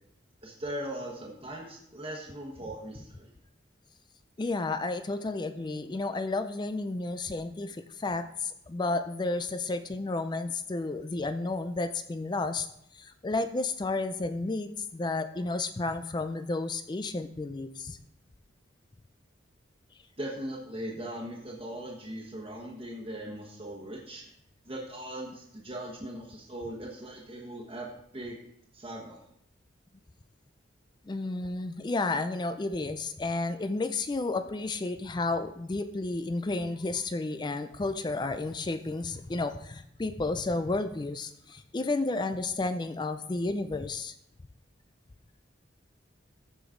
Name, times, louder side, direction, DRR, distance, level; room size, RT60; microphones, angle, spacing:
voice 1, 0.4-3.3 20.2-24.3 24.7-28.4 28.7-29.2, right 1 dB, 30° right, -4 dB, 1.3 m, -39 dB
voice 2, 4.4-12.7 12.9-18.0 31.1-44.1, left 3 dB, 25° left, 10 dB, 0.4 m, -32 dB
14.0 x 5.2 x 3.8 m, 0.73 s
head